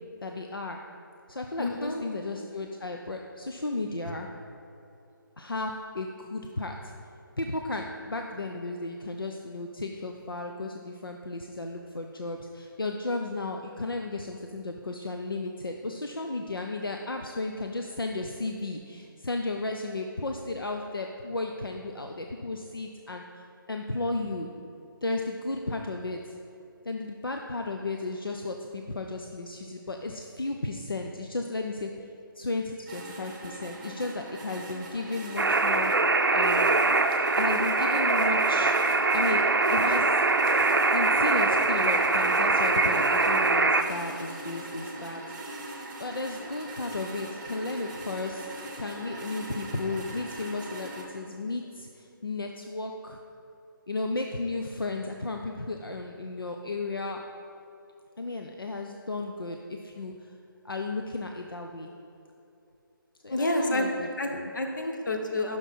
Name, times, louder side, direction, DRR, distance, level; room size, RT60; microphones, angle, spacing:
voice 1, 0.2-0.8 1.3-4.3 5.4-6.9 7.4-23.2 23.7-24.5 25.0-26.4 26.8-31.9 32.4-35.9 36.3-36.7 37.4-38.7 39.1-40.2 40.6-45.2 46.0-48.5 48.8-53.2 53.9-57.2 58.2-60.3 60.6-61.9 63.2-64.5, left 2 dB, 80° left, 3 dB, 0.6 m, -34 dB
voice 2, 1.6-2.0 63.3-63.8 64.2-65.6, left 1 dB, 60° left, 3 dB, 1.1 m, -29 dB
sound 1, 32.9-51.0, right 1 dB, 20° right, 1.0 m, -41 dB
sound 2, 35.4-43.8, right 3 dB, 70° right, 0.5 m, -23 dB
9.7 x 6.2 x 4.2 m, 2.8 s
figure-of-eight pair, 150°, 12 cm